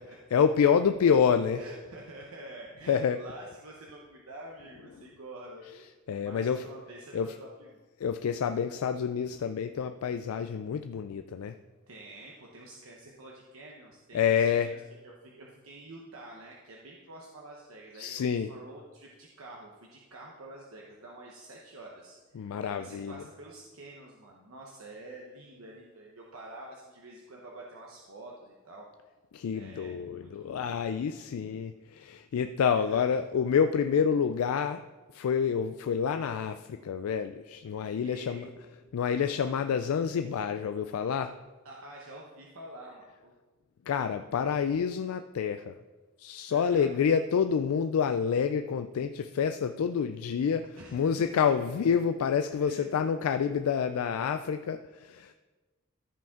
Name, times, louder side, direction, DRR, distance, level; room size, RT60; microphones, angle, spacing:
voice 1, 0.0-1.7 2.8-3.2 4.8-5.0 5.7-6.7 7.1-7.4 8.0-11.5 14.1-14.7 17.9-18.5 22.3-23.3 29.3-34.8 35.1-41.3 43.9-45.7 46.2-55.3, left 7 dB, 90° left, 8 dB, 0.3 m, -28 dB
voice 2, 1.6-5.8 6.2-7.8 11.9-28.9 29.5-30.5 32.7-33.0 38.0-38.5 41.6-43.3 46.5-47.0 50.8-51.1 51.5-51.6 52.6-52.9, right 1 dB, 75° right, -2 dB, 1.0 m, -48 dB
14.0 x 5.1 x 3.7 m, 1.3 s
head